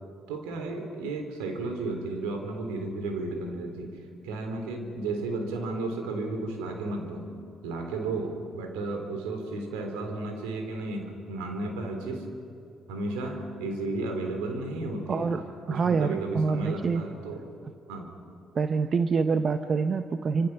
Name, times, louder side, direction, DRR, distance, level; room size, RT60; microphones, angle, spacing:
voice 1, 0.3-3.9 4.2-7.3 7.6-12.3 12.9-15.3 15.7-17.5 17.9-18.1, right 2 dB, 80° right, 4 dB, 3.5 m, -33 dB
voice 2, 15.1-15.4 15.7-17.0 18.5-20.5, right 5 dB, 45° right, 9 dB, 1.0 m, -26 dB
28.5 x 26.0 x 5.9 m, 2.5 s
hypercardioid pair, 50°, 0 cm